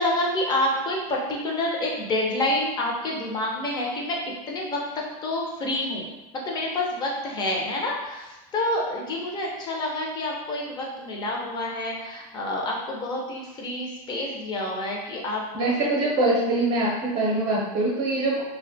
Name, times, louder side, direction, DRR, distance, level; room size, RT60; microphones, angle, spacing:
voice 1, 0.0-4.2 4.5-6.1 6.4-15.4 15.8-15.9 17.7-17.8, left 1 dB, 20° left, -2 dB, 0.4 m, -28 dB
voice 2, 15.5-18.4, right 2 dB, 50° right, -4 dB, 0.6 m, -23 dB
2.3 x 2.1 x 2.6 m, 1.0 s
supercardioid pair, 140°, 19 cm